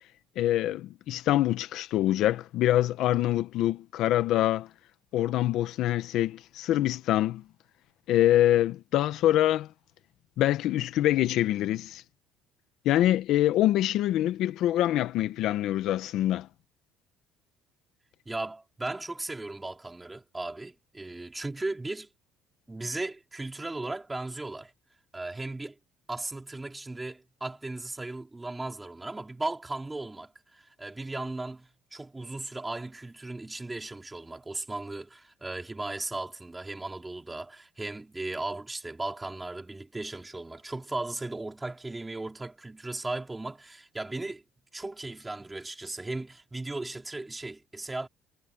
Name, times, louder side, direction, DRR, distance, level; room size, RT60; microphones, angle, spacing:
voice 1, 0.3-4.7 5.1-7.4 8.1-9.7 10.4-12.0 12.8-16.5, left 13 dB, 65° left, 1.1 m, -25 dB
voice 2, 18.3-22.1 22.7-24.7 25.1-25.8 26.1-44.4 44.7-48.1, right 2 dB, 10° right, 4.3 m, -36 dB
cardioid pair, 145°, 0 cm